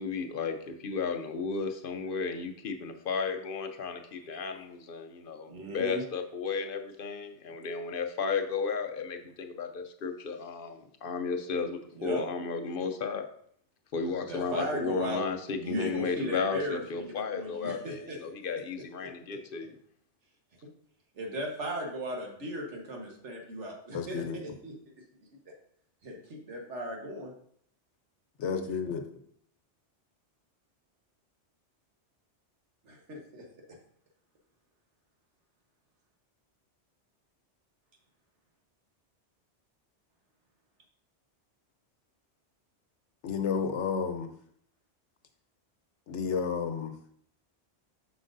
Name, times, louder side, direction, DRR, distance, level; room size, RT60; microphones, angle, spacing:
voice 1, 0.0-13.2 13.9-19.8, left 5 dB, 60° left, 7 dB, 0.7 m, -34 dB
voice 2, 5.5-6.0 11.9-12.2 14.3-15.2 15.5-18.2 19.0-19.1 21.1-24.7 26.0-27.3 32.8-33.4, right 1 dB, 85° right, 1 dB, 1.6 m, -36 dB
voice 3, 23.9-24.4 28.4-29.1 43.2-44.3 46.1-46.9, left 6 dB, 90° left, 7 dB, 1.1 m, -31 dB
7.5 x 5.9 x 2.6 m, 0.64 s
omnidirectional pair, 1.2 m